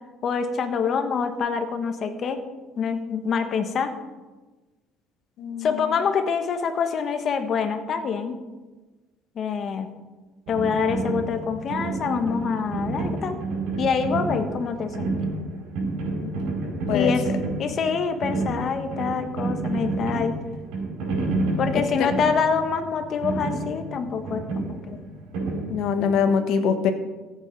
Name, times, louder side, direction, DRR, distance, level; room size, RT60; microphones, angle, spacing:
voice 1, 0.2-2.4 2.8-3.9 5.6-8.4 9.3-9.9 10.5-13.4 13.8-15.1 16.9-17.3 17.6-20.4 21.6-25.0, left 6 dB, 40° left, 7 dB, 1.3 m, -26 dB
voice 2, 5.4-5.7 16.2-16.3 16.9-17.1 22.0-22.1 25.7-26.9, left 6 dB, 65° left, 7 dB, 1.3 m, -23 dB
sound 1, 10.5-26.2, right 2 dB, 85° right, 4.8 m, -29 dB
14.5 x 8.5 x 5.3 m, 1.2 s
cardioid pair, 145°, 0 cm